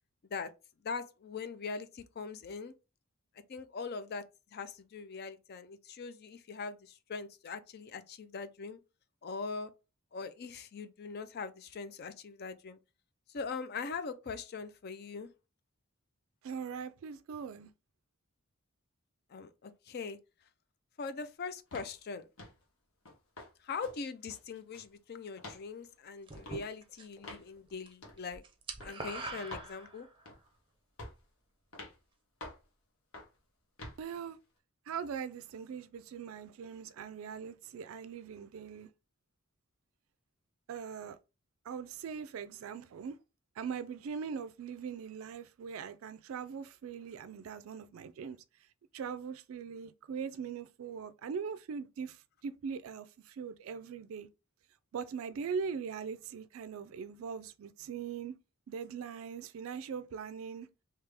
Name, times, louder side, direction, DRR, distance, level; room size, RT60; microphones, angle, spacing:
voice 1, 0.8-2.7 3.5-4.2 4.5-8.8 9.2-9.7 10.1-12.8 13.3-15.3 19.3-20.2 21.0-22.3 23.6-28.4 28.8-30.1, left 4 dB, 45° left, 0.4 m, -41 dB
voice 2, 16.4-17.7 34.0-34.4 34.9-38.9 40.7-41.2 41.6-43.2 43.6-48.4 48.9-54.3 54.9-58.4 58.7-60.7, right 6 dB, 70° right, 0.3 m, -41 dB
sound 1, 21.7-22.0 22.4-22.6 23.1-23.5 23.8-24.0 24.3-24.9 25.4-25.6 26.4-26.6 27.2-27.5 28.0-28.2 28.8-28.9 29.5-29.7 30.3-30.5 31.0-31.3 31.7-32.0 32.4-32.7 33.1-33.4 33.8-34.0, left 2 dB, 70° left, 1.2 m, -47 dB
sound 2, 26.3-27.3 27.6-27.9 28.2-30.3, right 3 dB, 25° right, 0.6 m, -43 dB
3.4 x 2.8 x 3.3 m
head